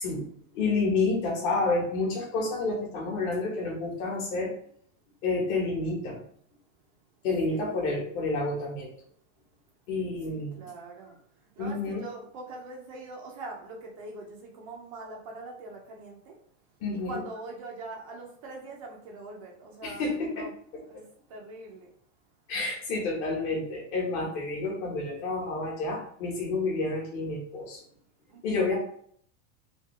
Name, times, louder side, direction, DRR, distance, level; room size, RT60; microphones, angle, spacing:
voice 1, 0.0-4.5 5.2-6.2 7.2-8.9 9.9-10.5 11.6-12.0 16.8-17.2 19.8-20.5 22.5-27.8 28.4-28.8, left 3 dB, 40° left, -1 dB, 1.2 m, -29 dB
voice 2, 7.5-8.1 10.3-11.2 11.6-16.4 16.9-20.5 20.9-21.0 21.3-21.9 28.3-28.8, right 3 dB, 30° right, 0 dB, 0.4 m, -43 dB
3.6 x 2.7 x 3.2 m, 0.62 s
supercardioid pair, 175°, 40 cm